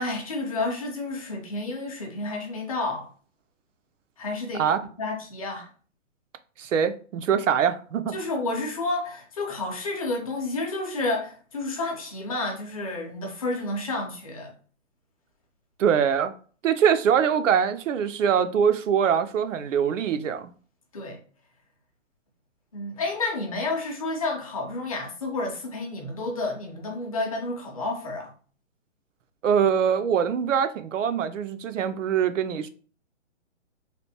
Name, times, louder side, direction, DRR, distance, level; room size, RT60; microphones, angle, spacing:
voice 1, 0.0-3.1 4.2-4.6 5.0-5.7 8.1-14.5 20.9-21.2 22.7-28.3, left 2 dB, 30° left, 0.6 m, -30 dB
voice 2, 6.6-8.2 15.8-16.3 16.6-20.5 29.4-32.7, right 7 dB, 75° right, 0.5 m, -23 dB
3.3 x 2.5 x 2.8 m
hypercardioid pair, 160°, 38 cm